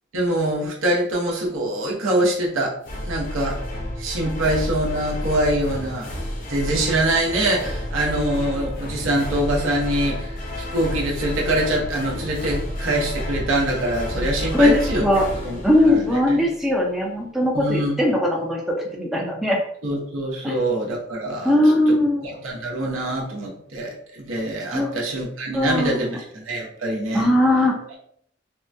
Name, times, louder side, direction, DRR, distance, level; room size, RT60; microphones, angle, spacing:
voice 1, 0.1-2.7 3.0-3.6 4.0-6.1 6.5-10.3 10.7-15.1 15.4-16.4 17.5-18.0 19.8-21.6 22.4-27.3, right 1 dB, 80° right, -3 dB, 0.8 m, -24 dB
sound 1, 2.8-16.5, left 1 dB, 40° left, 0.6 m, -30 dB
voice 2, 14.5-15.3 15.6-18.6 18.9-19.6 20.4-20.6 21.4-22.3 24.7-24.9 25.5-26.2 27.1-27.8, left 1 dB, ahead, -2 dB, 0.4 m, -19 dB
3.5 x 2.2 x 2.6 m, 0.69 s
head